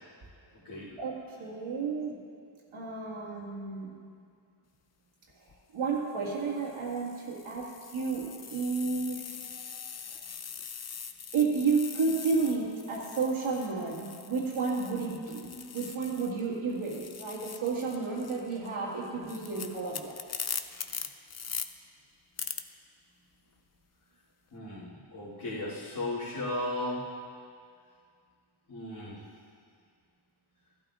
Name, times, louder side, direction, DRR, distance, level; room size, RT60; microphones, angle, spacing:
voice 1, 1.0-2.2 2.7-3.9 5.7-7.7 7.9-9.3 11.3-20.2, right 4 dB, 85° right, -3 dB, 2.1 m, -31 dB
sound 1, 5.3-5.6 6.3-16.5 16.7-21.7 22.4-22.6, left 6 dB, 35° left, 0.5 m, -42 dB
voice 2, 9.4-9.8 15.4-15.6 24.5-27.0 28.7-29.2, left 1 dB, 60° left, -13 dB, 3.0 m, -36 dB
14.5 x 12.5 x 2.5 m, 2.2 s
cardioid pair, 70°, 48 cm